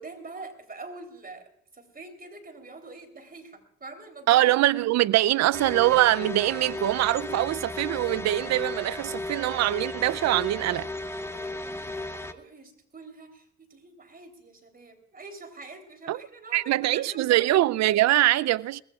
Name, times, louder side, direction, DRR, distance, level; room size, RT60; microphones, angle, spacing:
voice 1, 0.0-4.5 4.8-5.0 5.2-5.3 11.1-17.5, right 3 dB, 30° right, 3.5 m, -45 dB
voice 2, 4.3-10.9 16.1-16.2 16.5-18.8, right 15 dB, 60° right, 0.5 m, -23 dB
sound 1, 5.5-12.3, left 2 dB, 10° left, 0.9 m, -35 dB
22.5 x 19.5 x 2.4 m
cardioid pair, 90°, 30 cm